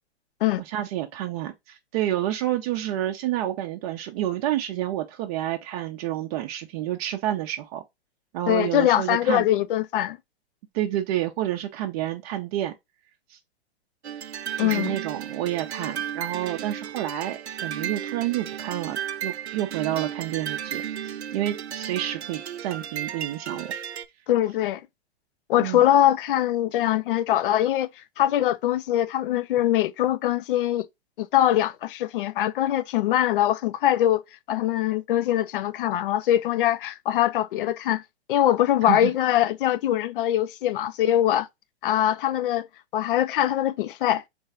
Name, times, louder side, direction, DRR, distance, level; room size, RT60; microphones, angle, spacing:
voice 1, 0.7-7.8 8.3-9.4 10.7-12.7 13.3-13.4 14.6-23.7 25.6-25.9 38.8-39.1, right 13 dB, 35° right, 0.6 m, -29 dB
voice 2, 8.5-10.2 14.6-15.0 24.3-24.8 25.5-30.9 31.2-34.2 34.5-38.0 38.3-41.5 41.8-42.7 42.9-44.2, left 12 dB, 55° left, 0.6 m, -22 dB
sound 1, 14.0-24.1, right 9 dB, 80° right, 0.6 m, -34 dB
3.3 x 3.2 x 3.4 m
figure-of-eight pair, 110°, 33 cm